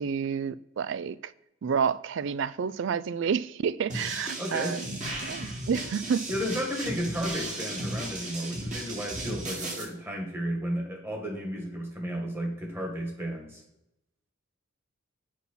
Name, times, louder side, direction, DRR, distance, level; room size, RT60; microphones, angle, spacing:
voice 1, 0.0-1.3 1.6-6.3, right 6 dB, 60° right, 0.3 m, -30 dB
sound 1, 3.9-9.8, right 1 dB, 35° right, 2.2 m, -35 dB
voice 2, 4.4-4.8 6.3-13.6, equal, 10° right, 1.7 m, -33 dB
6.3 x 5.5 x 5.6 m
head